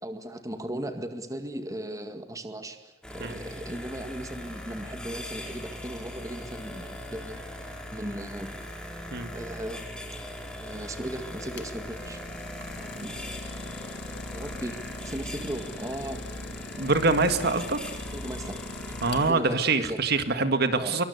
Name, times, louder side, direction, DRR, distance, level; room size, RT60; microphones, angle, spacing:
voice 1, 0.0-7.4 7.9-8.6 9.3-10.0 10.6-12.2 12.7-13.2 14.3-16.4 18.1-18.8 19.3-20.0 20.7-21.0, right 1 dB, 20° right, 7 dB, 2.0 m, -37 dB
sound 1, 3.0-19.3, left 1 dB, 5° left, 4.5 m, -40 dB
Idling, 11.3-19.6, left 3 dB, 60° left, 1.9 m, -42 dB
voice 2, 16.8-17.8 19.0-21.0, right 3 dB, 55° right, 9 dB, 1.9 m, -24 dB
26.5 x 23.5 x 8.2 m, 1.1 s
head